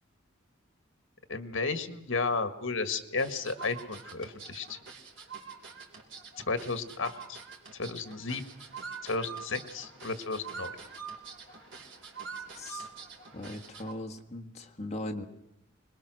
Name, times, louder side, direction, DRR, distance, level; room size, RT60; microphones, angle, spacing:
voice 1, 1.3-4.8 6.5-7.4 7.7-8.4 9.0-10.7, left 4 dB, 75° left, 9 dB, 1.7 m, -33 dB
sound 1, 3.2-13.9, right 5 dB, 60° right, 3.4 m, -45 dB
voice 2, 12.5-12.9 13.3-15.3, left 1 dB, 30° left, 3 dB, 1.6 m, -39 dB
25.0 x 21.0 x 6.3 m, 0.83 s
head